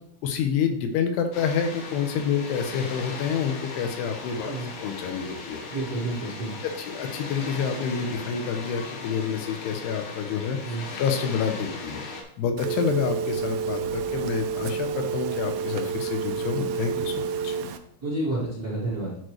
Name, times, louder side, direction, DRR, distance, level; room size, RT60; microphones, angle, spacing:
voice 1, 0.2-4.5 4.8-5.6 6.6-12.0 12.4-17.6, left 7 dB, 90° left, 6 dB, 2.8 m, -28 dB
Water, 1.3-12.2, left 3 dB, 70° left, 1.9 m, -38 dB
voice 2, 5.7-6.7 10.6-10.8 18.0-19.2, right 2 dB, 65° right, -7 dB, 0.9 m, -30 dB
Telephone, 12.6-17.8, right 6 dB, 85° right, 2.2 m, -29 dB
10.5 x 4.4 x 3.2 m, 0.73 s
omnidirectional pair, 4.8 m